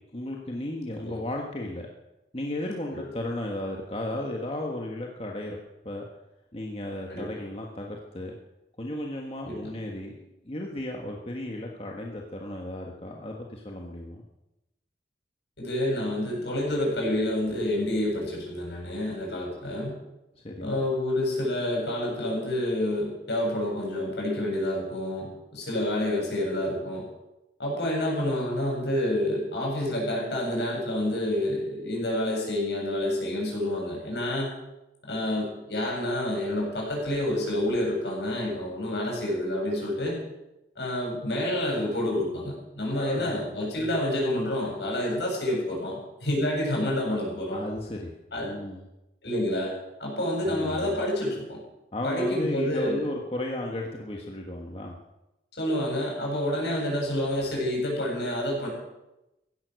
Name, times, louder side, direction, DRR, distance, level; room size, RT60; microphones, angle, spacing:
voice 1, 0.1-1.9 2.3-5.6 5.8-6.0 6.5-8.3 8.8-10.2 10.4-14.2 20.4-20.8 42.9-43.4 43.8-43.9 47.5-48.1 48.4-48.8 50.5-51.0 51.9-55.0, left 1 dB, 35° left, 0 dB, 1.5 m, -34 dB
voice 2, 15.6-20.0 20.6-25.3 25.5-27.0 27.6-34.5 35.0-40.2 40.8-47.6 48.3-48.5 49.2-49.7 50.0-51.6 52.0-53.1 55.6-58.7, left 1 dB, 75° left, -2 dB, 7.6 m, -28 dB
16.0 x 12.0 x 6.4 m, 0.92 s
head